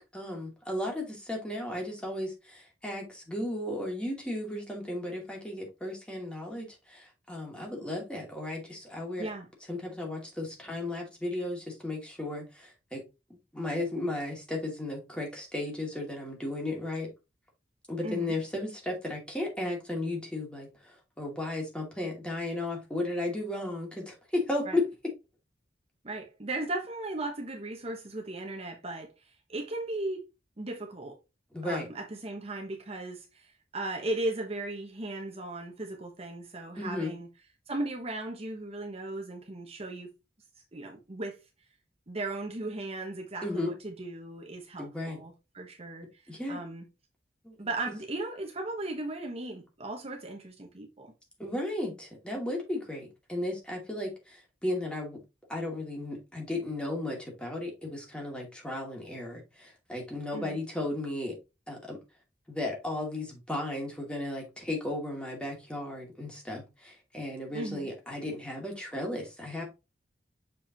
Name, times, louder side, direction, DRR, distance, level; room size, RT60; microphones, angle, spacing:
voice 1, 0.1-9.3 9.7-13.0 13.5-17.1 17.9-24.8 31.5-31.9 36.7-37.1 43.4-43.7 44.8-45.2 46.3-46.6 47.4-47.6 51.4-55.2 55.5-61.4 61.7-62.0 62.5-69.6, left 1 dB, 5° left, 2.4 m, -35 dB
voice 2, 18.0-18.3 24.7-24.8 26.0-30.2 30.6-31.2 31.6-37.3 37.7-40.1 40.7-41.4 42.1-46.8 47.6-51.1 60.3-60.6 67.5-67.9, right 2 dB, 35° right, 1.1 m, -37 dB
7.0 x 5.0 x 2.9 m
head